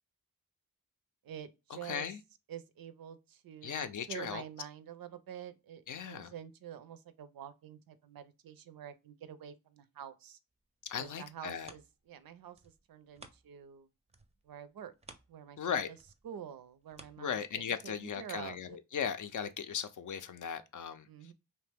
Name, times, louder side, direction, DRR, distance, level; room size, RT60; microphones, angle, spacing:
voice 1, 1.2-2.1 2.5-10.4 11.0-13.9 14.4-14.9 15.3-16.0 16.2-18.8 21.1-21.3, right 9 dB, 80° right, 0.5 m, -48 dB
voice 2, 1.8-2.2 3.6-4.4 5.9-6.3 10.9-11.7 15.6-15.9 17.2-21.1, left 7 dB, 60° left, 0.5 m, -37 dB
sound 1, 10.6-13.8 14.1-17.9 18.4-18.5, right 3 dB, 20° right, 0.4 m, -58 dB
2.8 x 2.1 x 3.3 m
cardioid pair, 50°, 35 cm